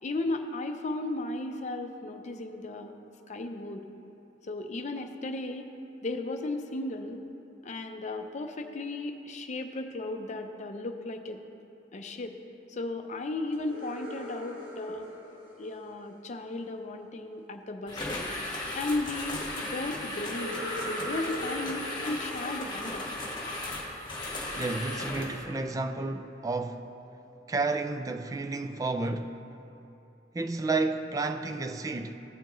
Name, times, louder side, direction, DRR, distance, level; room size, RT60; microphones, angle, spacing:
voice 1, 0.0-2.9 3.3-3.8 4.4-5.7 6.0-7.2 7.6-11.4 11.9-12.3 12.7-15.1 15.6-18.3 18.7-20.6 20.9-23.0, left 2 dB, 40° left, 0.6 m, -35 dB
sound 1, 13.5-16.5 20.1-23.9, equal, 50° right, 2.2 m, -41 dB
sound 2, 17.9-25.4, left 2 dB, 25° left, 1.5 m, -36 dB
voice 2, 24.6-26.9 27.5-29.4 30.3-32.2, right 3 dB, 20° right, 0.3 m, -31 dB
15.0 x 6.8 x 3.1 m
head